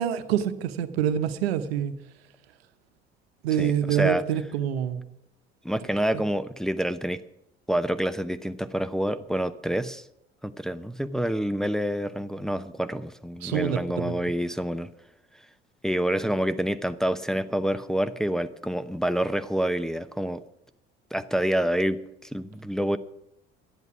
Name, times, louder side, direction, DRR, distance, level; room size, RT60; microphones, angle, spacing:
voice 1, 0.0-1.9 3.4-5.0 13.4-14.2, right 9 dB, 85° right, 10 dB, 1.0 m, -26 dB
voice 2, 3.6-4.2 5.6-7.2 7.7-10.0 10.4-14.9 15.8-20.4 21.1-23.0, equal, ahead, 10 dB, 0.8 m, -27 dB
12.5 x 11.0 x 6.0 m, 0.84 s
hypercardioid pair, 60°, 30 cm